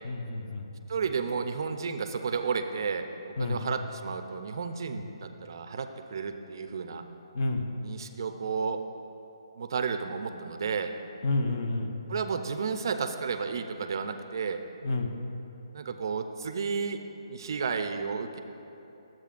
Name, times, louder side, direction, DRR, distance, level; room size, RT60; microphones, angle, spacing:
voice 1, 0.0-0.7 3.4-3.6 7.3-7.7 11.2-11.9 14.8-15.1, left 2 dB, 45° left, 5 dB, 0.6 m, -29 dB
voice 2, 0.9-3.1 3.4-7.0 7.8-8.8 9.5-10.9 12.1-14.6 15.7-17.0 17.3-18.4, right 5 dB, 45° right, 8 dB, 0.4 m, -32 dB
11.5 x 7.4 x 2.5 m, 2.9 s
hypercardioid pair, 170°, 3 cm